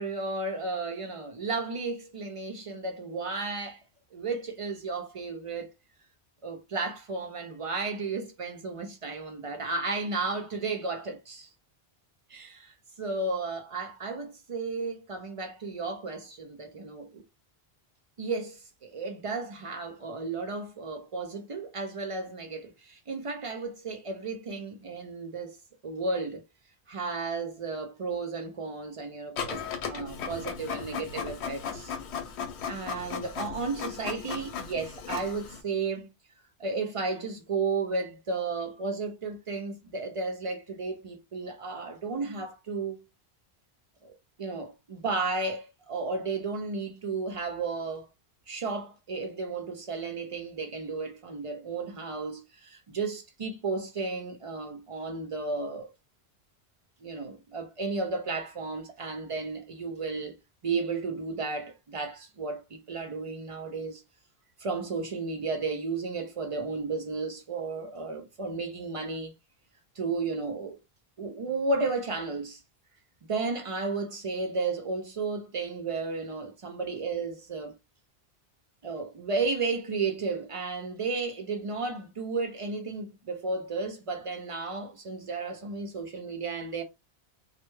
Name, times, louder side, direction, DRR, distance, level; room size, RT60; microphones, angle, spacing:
voice 1, 0.0-3.8 4.1-5.7 6.4-11.5 12.3-17.2 18.2-25.6 25.8-26.4 26.9-31.9 32.7-36.1 36.6-43.0 44.0-48.1 48.5-55.9 57.0-60.4 60.6-64.0 64.6-69.3 70.0-70.8 71.2-72.6 73.3-77.8 78.8-86.8, right 3 dB, 50° right, 0.4 m, -33 dB
Printer, 29.4-35.6, left 6 dB, 90° left, 0.9 m, -36 dB
2.1 x 2.1 x 3.0 m
omnidirectional pair, 1.1 m